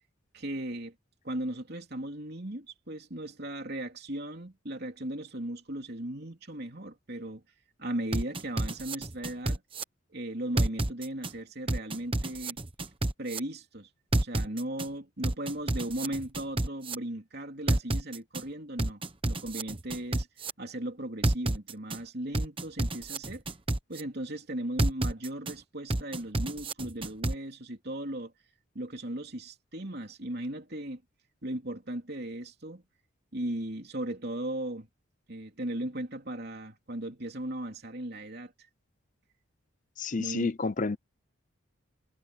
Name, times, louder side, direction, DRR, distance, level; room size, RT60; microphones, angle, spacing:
voice 1, 0.3-0.9 1.2-7.4 7.8-9.6 10.1-12.6 13.2-13.9 14.1-20.3 20.6-23.4 23.9-28.3 28.7-31.0 31.4-32.8 33.3-34.9 35.3-38.5 40.2-40.5, right 1 dB, 50° right, 3.3 m, -37 dB
sound 1, 8.1-9.8 10.6-11.3 11.7-13.4 14.1-14.9 15.2-16.9 17.7-18.4 18.8-20.5 21.2-22.0 22.3-24.0 24.8-25.5 25.9-27.3, right 1 dB, 25° right, 1.2 m, -29 dB
voice 2, 40.0-41.0, left 3 dB, 35° left, 0.6 m, -29 dB
head